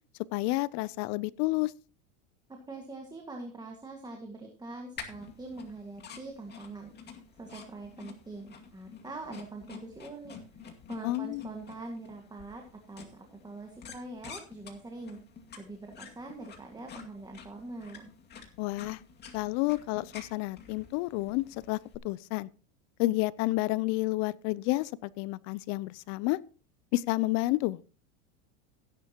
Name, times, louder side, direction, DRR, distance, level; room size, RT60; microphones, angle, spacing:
voice 1, 0.3-1.7 11.0-11.4 18.6-19.0 19.3-21.8 22.0-22.5 23.0-26.4 26.9-27.9, left 20 dB, 50° left, 0.6 m, -30 dB
voice 2, 2.5-6.9 7.4-10.4 10.9-15.2 15.6-18.1, right 2 dB, 10° right, 1.8 m, -43 dB
sound 1, 5.0-22.0, left 6 dB, 25° left, 2.2 m, -49 dB
16.0 x 10.5 x 2.9 m
supercardioid pair, 125°, 37 cm